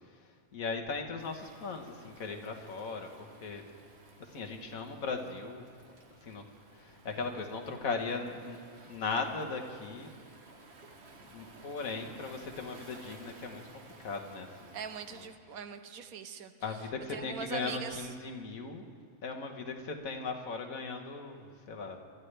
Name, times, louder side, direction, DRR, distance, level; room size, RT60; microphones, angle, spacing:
voice 1, 0.2-3.1 3.4-3.6 4.2-5.7 6.2-6.4 6.7-10.1 11.3-13.6 14.0-14.8 15.1-15.3 16.6-18.8 19.2-22.0, left 4 dB, 75° left, 2 dB, 1.7 m, -38 dB
Waves surf, 1.2-15.3, right 3 dB, 50° right, 1.4 m, -55 dB
voice 2, 14.7-16.5 17.1-18.1, right 7 dB, 85° right, 9 dB, 1.3 m, -41 dB
25.5 x 12.5 x 3.3 m, 2.1 s
omnidirectional pair, 1.5 m